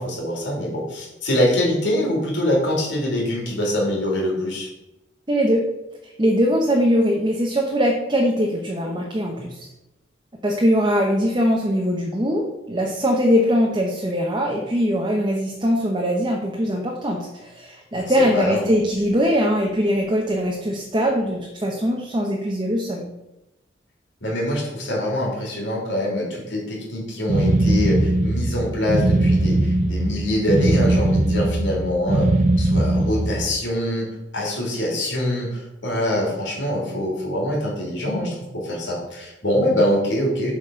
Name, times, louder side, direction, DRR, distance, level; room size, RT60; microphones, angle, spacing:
voice 1, 0.0-4.7 18.2-18.7 24.2-32.3 32.6-34.1 34.3-40.5, left 1 dB, 85° left, -3 dB, 3.2 m, -24 dB
voice 2, 5.3-5.6 6.2-9.6 10.4-23.1, equal, 25° right, 0 dB, 0.9 m, -21 dB
sound 1, 27.3-33.6, right 1 dB, 40° right, 0.5 m, -20 dB
7.6 x 4.2 x 6.3 m, 0.95 s
head